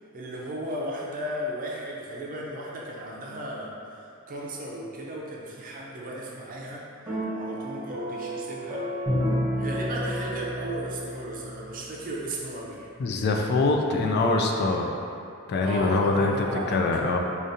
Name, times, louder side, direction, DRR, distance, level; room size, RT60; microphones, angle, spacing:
voice 1, 0.1-8.8 9.6-12.9 15.6-16.8, right 1 dB, 40° right, -4 dB, 0.5 m, -35 dB
sound 1, 7.1-11.5, right 1 dB, 15° right, 0.8 m, -34 dB
Bowed string instrument, 9.1-11.9, left 1 dB, 15° left, 1.3 m, -30 dB
voice 2, 13.0-14.9 15.5-16.3 16.7-17.2, left 3 dB, 50° left, 2 dB, 0.3 m, -23 dB
5.0 x 2.5 x 2.7 m, 2.5 s
head